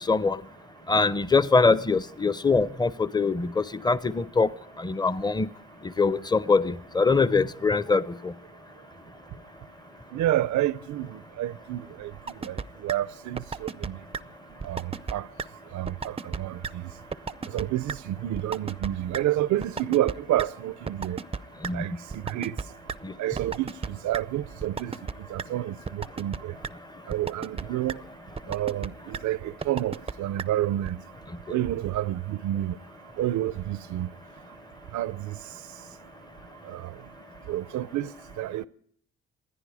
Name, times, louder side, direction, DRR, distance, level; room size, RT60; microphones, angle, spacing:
voice 1, 0.1-0.4 0.9-4.5 4.8-5.5 6.0-8.3 21.6-21.8 23.0-23.1, left 4 dB, 15° left, 0.8 m, -23 dB
voice 2, 10.1-12.1 12.4-12.6 12.8-14.0 14.6-15.3 15.7-16.8 17.5-21.2 21.7-22.5 23.2-24.9 25.3-26.5 27.1-28.0 28.5-31.0 31.5-32.7 33.2-34.1 34.9-35.3 36.7-36.9 37.5-38.1 38.4-38.7, right 13 dB, 75° right, 0.7 m, -29 dB
sound 1, 12.3-12.6 12.9-13.0 13.4-13.9 14.1-14.2 14.6-15.1 15.4-15.5 15.9-16.4 16.6-16.7 17.1-17.6 17.9-18.0 18.4-18.9 19.1-19.2 19.6-20.5 20.9-21.7 22.1-23.0 23.4-23.9 24.1-24.2 24.6-25.1 25.4-25.5 25.9-26.4 26.6-26.7 27.1-27.6 27.9-28.0 28.4-28.9 29.1-29.2 29.6-30.1 30.4-30.5 30.9-31.0, right 5 dB, 20° right, 0.6 m, -32 dB
27.5 x 10.0 x 4.9 m
cardioid pair, 90°, 30 cm